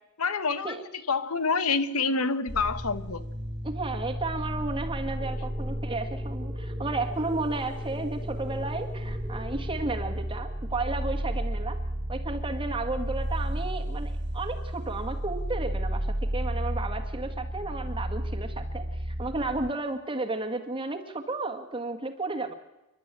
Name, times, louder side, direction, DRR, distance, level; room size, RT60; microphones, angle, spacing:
voice 1, 0.2-0.7 1.1-3.2, left 4 dB, 85° left, 1.3 m, -27 dB
sound 1, 2.5-19.7, equal, 50° right, 1.7 m, -33 dB
voice 2, 3.6-11.8 12.1-22.5, right 3 dB, 25° right, 1.6 m, -33 dB
sound 2, 5.2-13.5, equal, 10° left, 2.6 m, -48 dB
29.5 x 11.5 x 8.9 m
head